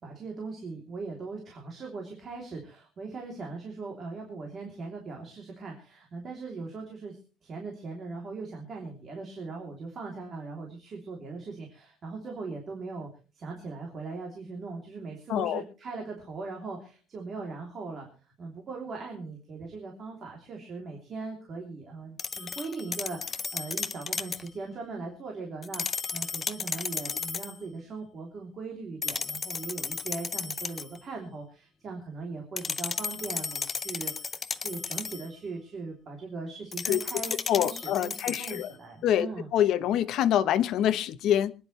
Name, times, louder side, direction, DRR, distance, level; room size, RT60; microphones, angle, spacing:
voice 1, 0.0-13.1 13.3-18.1 18.4-39.5, right 3 dB, 30° right, 3.1 m, -39 dB
voice 2, 15.3-15.6 36.9-37.0 37.5-38.7 39.0-41.5, left 11 dB, 55° left, 0.9 m, -25 dB
sound 1, 22.2-24.5 25.6-27.6 29.0-31.0 32.6-35.3 36.7-38.7, left 5 dB, 20° left, 0.6 m, -34 dB
25.5 x 10.0 x 3.3 m
cardioid pair, 165°, 0 cm